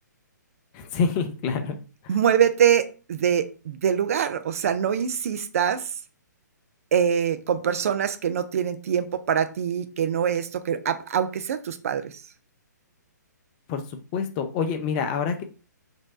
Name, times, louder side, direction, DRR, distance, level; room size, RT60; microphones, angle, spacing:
voice 1, 0.7-1.8 2.0-2.2 13.7-15.4, left 6 dB, 25° left, 6 dB, 0.5 m, -27 dB
voice 2, 2.1-5.9 6.9-12.1, right 8 dB, 50° right, 10 dB, 0.4 m, -24 dB
3.0 x 2.7 x 4.2 m, 0.34 s
figure-of-eight pair, 130°, 10 cm